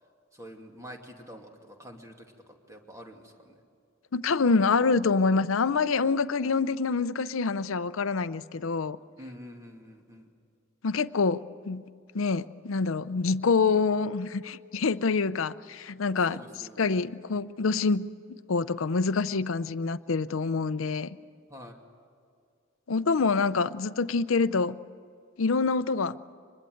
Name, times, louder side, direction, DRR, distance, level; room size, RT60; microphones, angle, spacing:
voice 1, 0.4-2.3 2.7-3.5 9.2-10.3 16.3-16.9 21.5-21.7, equal, 15° right, 2 dB, 2.5 m, -46 dB
voice 2, 4.1-9.0 10.8-11.8 12.1-16.4 16.8-18.1 18.5-21.2 22.9-24.8 25.4-26.2, left 4 dB, 75° left, 14 dB, 0.6 m, -26 dB
24.5 x 21.0 x 7.9 m, 2.3 s
head